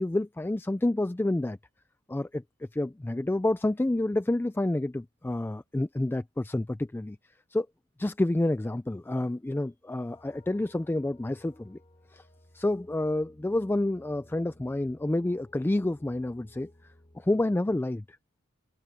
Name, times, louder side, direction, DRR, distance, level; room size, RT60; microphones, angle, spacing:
voice 1, 0.0-1.6 2.1-2.4 2.7-7.2 7.5-7.7 8.0-11.8 12.1-12.2 12.5-16.7 17.2-18.0, left 1 dB, 10° left, 0.3 m, -29 dB
sound 1, 10.1-17.3, left 1 dB, 25° left, 2.0 m, -58 dB
head